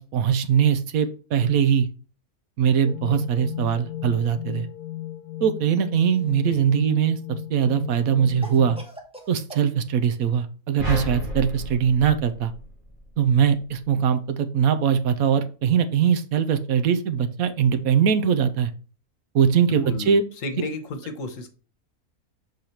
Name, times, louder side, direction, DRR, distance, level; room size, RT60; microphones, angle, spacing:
voice 1, 0.0-1.9 2.6-4.7 5.4-7.2 7.5-8.8 9.3-12.5 13.2-18.7 19.3-20.2, right 7 dB, 75° right, 9 dB, 1.2 m, -21 dB
sound 1, 2.8-8.8, left 14 dB, 90° left, 1.2 m, -36 dB
Cough, 6.1-6.9 8.4-9.7, right 1 dB, 5° right, 1.0 m, -43 dB
sound 2, 10.8-13.2, equal, 25° right, 3.6 m, -32 dB
voice 2, 19.8-20.2 20.4-21.5, left 3 dB, 65° left, 7 dB, 1.3 m, -32 dB
6.6 x 4.0 x 4.3 m, 0.36 s
omnidirectional pair, 1.5 m